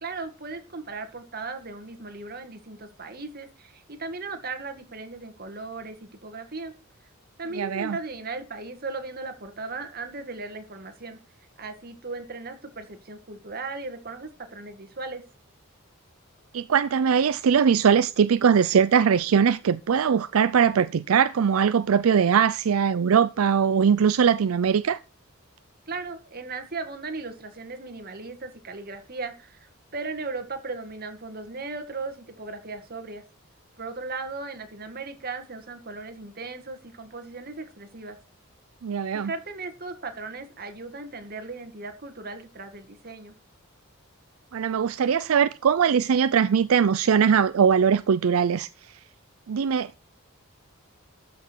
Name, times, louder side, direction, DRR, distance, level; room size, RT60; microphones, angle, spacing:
voice 1, 0.0-6.7 7.4-11.2 11.6-15.2 25.9-33.2 33.8-38.2 39.1-43.3, right 3 dB, 45° right, 1.9 m, -37 dB
voice 2, 7.5-8.0 16.5-25.0 38.8-39.3 44.5-48.7 49.5-50.0, right 7 dB, 80° right, 0.4 m, -21 dB
13.0 x 6.1 x 4.5 m
head